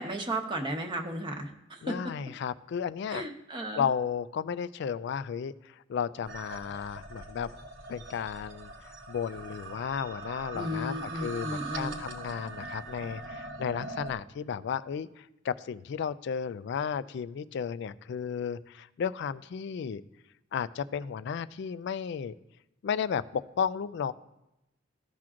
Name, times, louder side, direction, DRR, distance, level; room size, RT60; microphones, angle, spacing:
voice 1, 0.0-2.0 3.1-3.9 10.5-12.0, right 1 dB, 25° right, 2 dB, 0.9 m, -34 dB
voice 2, 1.8-3.2 3.7-7.5 7.9-8.7 9.1-20.0 20.5-22.3 22.8-24.1, left 7 dB, 60° left, 15 dB, 0.3 m, -33 dB
sound 1, 6.2-14.1, right 2 dB, 85° right, 1.0 m, -42 dB
15.0 x 5.9 x 2.5 m, 0.91 s
head